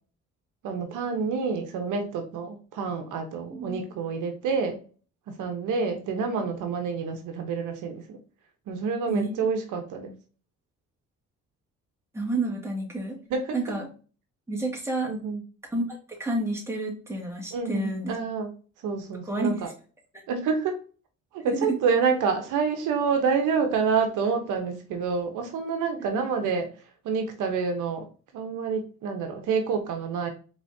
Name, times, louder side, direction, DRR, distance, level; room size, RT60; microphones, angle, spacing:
voice 1, 0.6-4.8 5.3-8.2 8.7-10.1 13.3-13.6 15.1-15.4 17.5-18.5 18.8-19.7 20.3-20.8 21.3-26.7 27.0-28.1 28.3-30.3, right 5 dB, 85° right, 5 dB, 0.9 m, -28 dB
voice 2, 3.5-3.8 9.1-9.5 12.1-13.2 13.5-13.9 14.5-15.1 15.7-18.2 19.3-19.5 21.5-21.8 26.1-26.3, right 2 dB, 10° right, -3 dB, 2.1 m, -30 dB
4.8 x 3.7 x 2.7 m, 0.37 s
cardioid pair, 90°, 30 cm